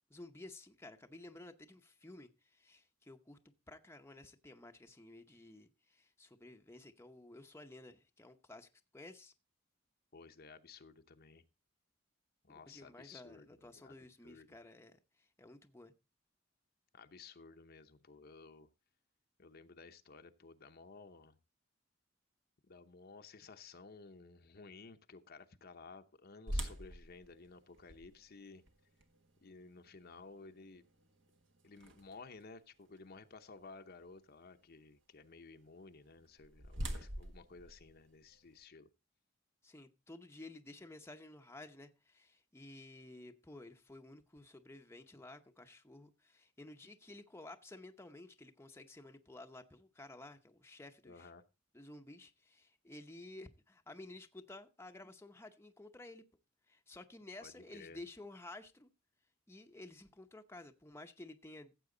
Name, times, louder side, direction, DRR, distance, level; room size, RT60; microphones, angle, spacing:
voice 1, 0.1-9.3 12.5-15.9 39.6-51.3 51.7-56.2 56.7-58.9 59.5-61.7, left 2 dB, 15° left, 0.8 m, -53 dB
voice 2, 10.1-11.4 12.4-14.5 16.9-18.7 19.4-21.4 22.6-28.6 29.4-30.8 31.6-38.9 51.0-51.4 57.4-58.0, left 4 dB, 55° left, 0.8 m, -55 dB
sound 1, 26.5-32.4 33.0-33.1 33.7-33.9 36.0-38.6, right 1 dB, 70° right, 1.7 m, -45 dB
15.0 x 7.6 x 3.8 m
head